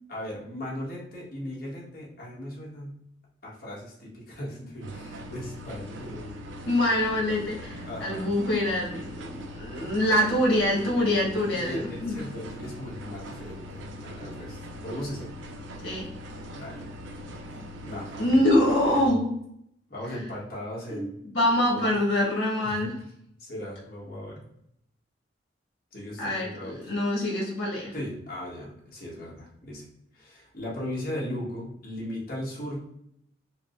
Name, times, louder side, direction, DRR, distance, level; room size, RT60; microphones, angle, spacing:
voice 1, 0.1-3.0 3.4-6.3 7.9-8.3 9.7-10.0 11.0-11.1 11.3-15.3 16.5-16.8 17.5-18.4 18.8-18.9 19.9-21.1 21.7-22.0 22.6-22.9 23.4-24.5 25.9-26.8 27.9-29.9 30.1-32.8, left 1 dB, 55° left, -4 dB, 1.2 m, -38 dB
sound 1, 4.8-19.1, equal, 80° right, 0.5 m, -41 dB
voice 2, 6.7-12.1 15.8-16.1 18.2-19.3 20.9-21.0 21.3-22.9 26.2-27.9, left 1 dB, 80° left, -3 dB, 1.3 m, -25 dB
4.5 x 2.1 x 2.5 m, 0.73 s
head